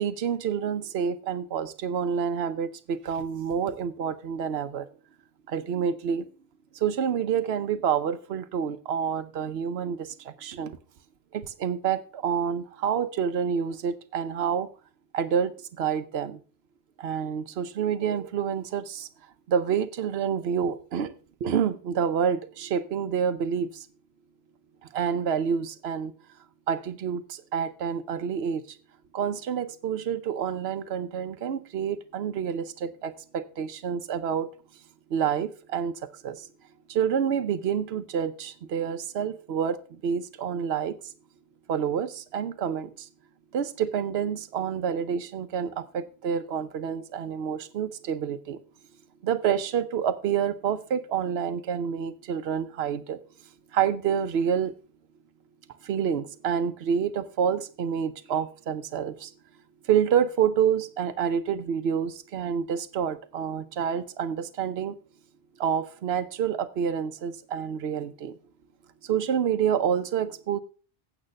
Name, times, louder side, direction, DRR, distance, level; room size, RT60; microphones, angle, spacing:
voice 1, 0.0-4.9 5.5-6.3 6.7-10.8 11.3-14.7 15.1-16.4 17.0-19.1 19.5-21.1 21.4-23.9 24.8-26.1 26.7-28.8 29.1-34.5 35.1-35.9 36.2-36.5 36.9-41.1 41.7-43.1 43.5-48.6 49.2-53.2 53.7-54.7 55.8-59.3 59.8-65.0 65.6-68.3 69.0-70.6, right 7 dB, 80° right, 1.0 m, -28 dB
8.8 x 7.2 x 5.2 m
omnidirectional pair, 1.0 m